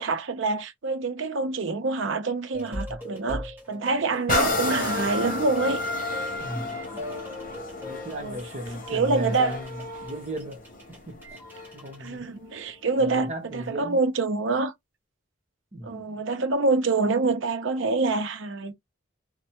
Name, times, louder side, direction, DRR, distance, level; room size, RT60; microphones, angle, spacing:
voice 1, 0.0-5.8 8.2-8.4 8.9-9.6 12.0-14.7 15.8-18.8, right 3 dB, 65° right, 0.6 m, -26 dB
sound 1, 2.5-12.1, left 1 dB, 10° right, 1.1 m, -40 dB
sound 2, 4.3-11.9 12.5-12.6, left 2 dB, 40° left, 0.7 m, -31 dB
voice 2, 6.4-7.1 7.8-10.7 11.1-11.4 11.7-12.3 13.0-14.0 15.7-16.2, right 1 dB, 35° right, 0.9 m, -36 dB
3.2 x 2.1 x 2.8 m
head